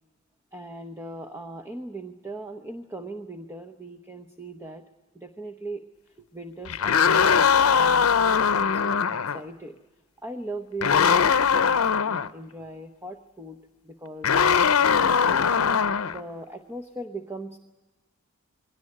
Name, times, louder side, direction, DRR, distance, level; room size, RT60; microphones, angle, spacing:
voice 1, 0.5-4.8 5.1-9.8 10.2-13.6 13.8-15.6 16.1-17.6, right 2 dB, 10° right, 6 dB, 0.9 m, -39 dB
sound 1, 6.7-9.4 10.8-12.3 14.2-16.2, left 6 dB, 80° left, 0.6 m, -21 dB
22.5 x 17.5 x 9.7 m, 1.2 s
head